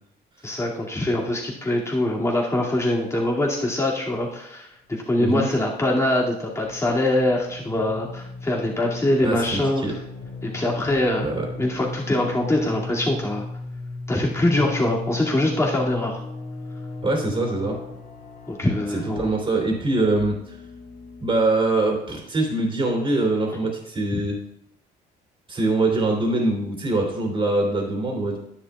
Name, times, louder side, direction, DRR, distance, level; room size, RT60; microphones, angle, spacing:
voice 1, 0.4-9.9 10.4-11.3 11.6-13.4 14.1-16.2 18.5-19.3 24.1-24.2, left 1 dB, 15° left, -3 dB, 2.5 m, -23 dB
voice 2, 5.2-5.5 9.2-9.9 11.2-11.5 17.0-17.8 18.9-20.3 21.2-24.4 25.5-28.4, right 2 dB, 30° right, 1 dB, 3.1 m, -23 dB
sound 1, 5.7-5.9 6.6-21.5, left 3 dB, 65° left, 2.5 m, -36 dB
11.0 x 10.0 x 2.4 m, 0.77 s
cardioid pair, 110°, 17 cm